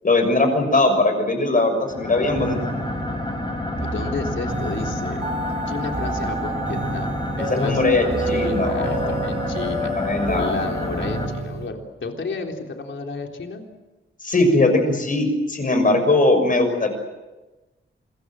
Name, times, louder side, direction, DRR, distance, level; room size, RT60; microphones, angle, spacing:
voice 1, 0.0-2.6 7.5-9.2 9.9-10.6 14.2-16.9, left 2 dB, 40° left, 6 dB, 6.4 m, -20 dB
sound 1, 1.8-11.3, left 2 dB, 20° left, 5.3 m, -29 dB
sound 2, 2.3-11.7, right 2 dB, 35° right, 4.0 m, -30 dB
voice 2, 3.8-5.2 5.7-7.1 7.4-7.8 8.3-9.9 10.3-13.7, left 4 dB, 65° left, 2 dB, 3.8 m, -32 dB
27.0 x 22.0 x 7.8 m, 1.1 s
wide cardioid pair, 115°, 21 cm